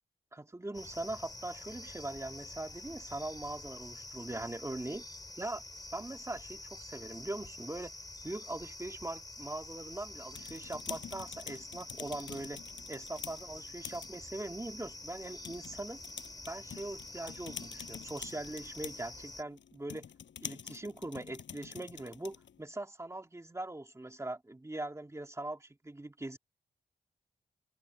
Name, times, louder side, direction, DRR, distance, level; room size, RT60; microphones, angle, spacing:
voice 1, 0.3-5.0 5.4-5.6 5.9-7.9 8.2-12.6 12.9-16.0 16.5-20.0 20.4-26.4, right 2 dB, 15° right, 2.2 m, -41 dB
sound 1, 0.7-19.4, left 2 dB, 20° left, 3.1 m, -48 dB
sound 2, 10.1-22.6, left 8 dB, 85° left, 6.7 m, -48 dB
open air
cardioid pair, 90°, 18 cm